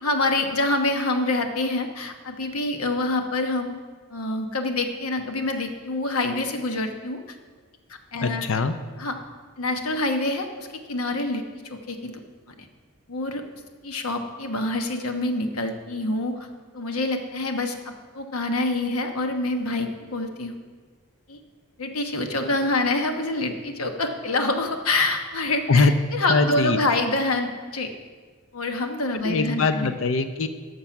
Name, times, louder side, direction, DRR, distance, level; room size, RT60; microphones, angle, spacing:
voice 1, 0.0-3.8 4.1-7.2 8.1-8.5 9.0-9.2 9.6-11.4 11.7-12.2 12.6-12.7 13.1-13.4 13.8-16.5 16.7-20.6 21.3-21.4 21.8-27.9 28.5-29.9, left 2 dB, 85° left, 5 dB, 1.1 m, -26 dB
voice 2, 8.2-8.7 25.7-26.0 26.3-26.8 29.2-30.5, left 4 dB, 65° left, 9 dB, 0.6 m, -21 dB
13.0 x 6.7 x 5.8 m, 1.5 s
head